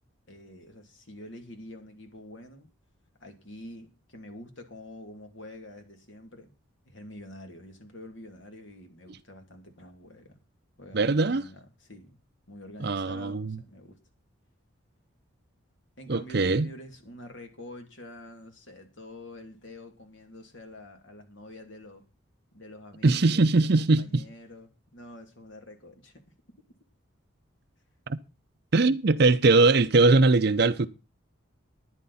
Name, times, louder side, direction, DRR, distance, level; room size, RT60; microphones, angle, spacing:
voice 1, 0.3-2.7 3.2-6.5 6.8-10.4 10.8-12.1 12.5-14.0 16.0-22.1 22.5-26.2, left 1 dB, 65° left, 2.8 m, -46 dB
voice 2, 10.9-11.4 12.8-13.6 16.1-16.7 23.0-24.2 28.1-28.2 28.7-30.9, right 3 dB, 50° right, 0.6 m, -21 dB
13.0 x 10.5 x 4.2 m
head